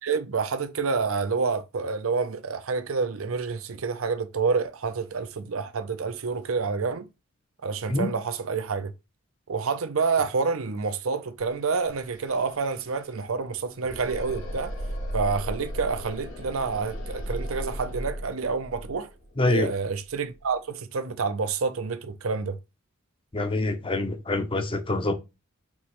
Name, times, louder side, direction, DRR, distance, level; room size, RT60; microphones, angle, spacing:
voice 1, 0.0-7.1 7.6-8.9 9.5-14.7 15.1-19.1 19.5-22.6, right 4 dB, 75° right, 0.7 m, -28 dB
sound 1, 11.8-20.5, equal, 80° left, 1.7 m, -37 dB
voice 2, 19.4-19.7 23.3-25.1, left 2 dB, 25° left, 0.7 m, -25 dB
5.3 x 3.1 x 3.0 m
head